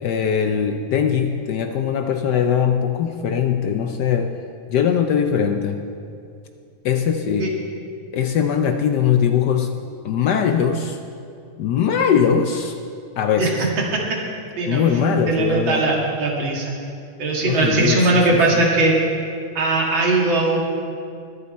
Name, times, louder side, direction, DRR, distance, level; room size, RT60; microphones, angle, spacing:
voice 1, 0.0-4.3 4.7-5.9 6.8-7.5 8.1-9.7 10.0-11.0 11.6-12.7 13.2-13.7 14.7-15.9 17.5-18.7, left 7 dB, 70° left, 6 dB, 1.1 m, -21 dB
voice 2, 15.3-16.6 17.2-18.9 19.6-20.6, right 2 dB, 70° right, -2 dB, 2.7 m, -19 dB
22.5 x 7.9 x 4.2 m, 2.5 s
omnidirectional pair, 2.2 m